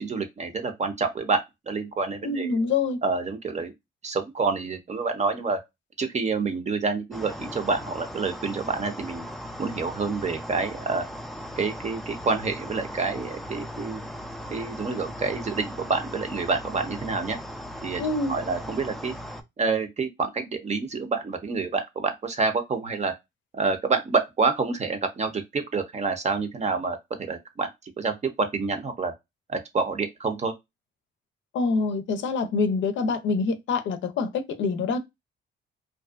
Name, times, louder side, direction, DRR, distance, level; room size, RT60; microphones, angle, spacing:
voice 1, 0.0-2.6 3.0-3.7 4.0-5.6 6.0-9.2 9.6-11.0 11.6-14.1 14.5-17.4 17.8-18.0 18.3-19.1 19.6-23.1 23.5-29.1 29.5-30.5, right 4 dB, 35° right, 0.7 m, -28 dB
voice 2, 2.2-3.0 18.0-18.3 31.5-35.0, left 4 dB, 70° left, 0.5 m, -25 dB
sound 1, 7.1-19.4, equal, ahead, 0.4 m, -38 dB
2.6 x 2.2 x 2.3 m
cardioid pair, 90°, 20 cm